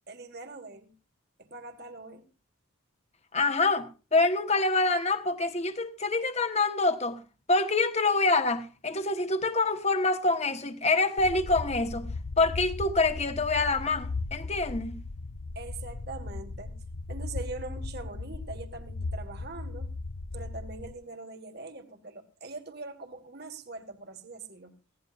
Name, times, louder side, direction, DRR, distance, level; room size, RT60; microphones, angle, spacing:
voice 1, 0.1-0.9 1.4-2.3 15.6-16.8 17.1-19.9 20.3-24.7, right 3 dB, 50° right, 1.8 m, -42 dB
voice 2, 3.3-7.2 7.5-12.1 12.4-15.0, left 3 dB, 30° left, 1.3 m, -26 dB
sound 1, 11.2-20.9, left 3 dB, 85° left, 0.8 m, -37 dB
20.0 x 17.0 x 2.6 m
head